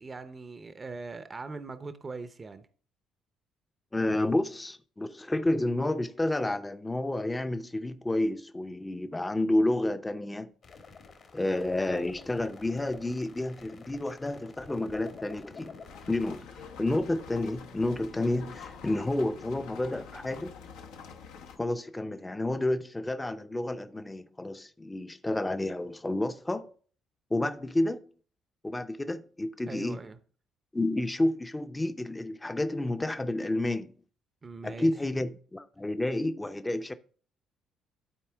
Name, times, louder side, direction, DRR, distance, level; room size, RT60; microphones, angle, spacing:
voice 1, 0.0-2.6 29.7-30.2 34.4-34.9, right 4 dB, 35° right, 0.7 m, -41 dB
voice 2, 3.9-10.5 11.3-15.7 16.1-20.5 21.6-26.7 27.3-28.1 28.6-30.1 30.7-33.9 34.6-36.9, left 1 dB, 15° left, 0.6 m, -30 dB
sound 1, 10.6-16.4, left 5 dB, 55° left, 1.4 m, -49 dB
sound 2, 15.9-21.6, left 6 dB, 80° left, 0.8 m, -46 dB
12.0 x 4.2 x 3.4 m
hypercardioid pair, 55°, 0 cm